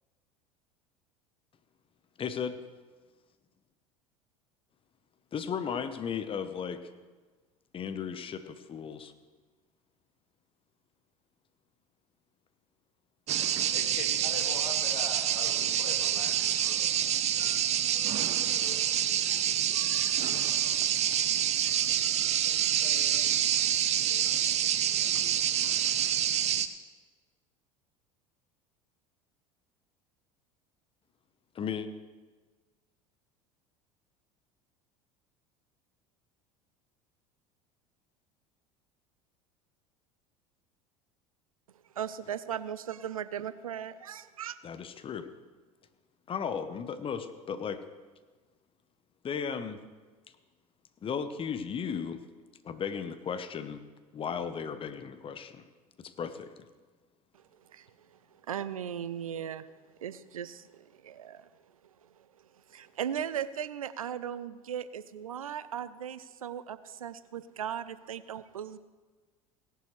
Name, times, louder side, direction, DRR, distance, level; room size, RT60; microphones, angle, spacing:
voice 1, 2.2-2.6 5.3-6.8 7.7-9.1 21.6-23.3 31.5-31.9 44.6-45.3 46.3-47.8 49.2-49.8 51.0-52.2 52.6-53.8 54.1-55.6 56.0-56.7, left 7 dB, 30° left, 10 dB, 1.0 m, -36 dB
sound 1, 13.3-26.7, right 10 dB, 40° right, 0.7 m, -27 dB
voice 2, 13.7-16.8, left 4 dB, 70° left, 4 dB, 2.0 m, -42 dB
voice 3, 41.9-44.6 57.3-57.4 57.7-58.2 58.5-59.7 60.0-61.5 62.0-62.1 62.7-68.8, right 9 dB, 85° right, 16 dB, 0.5 m, -37 dB
17.5 x 11.0 x 3.2 m, 1.3 s
hypercardioid pair, 75°, 17 cm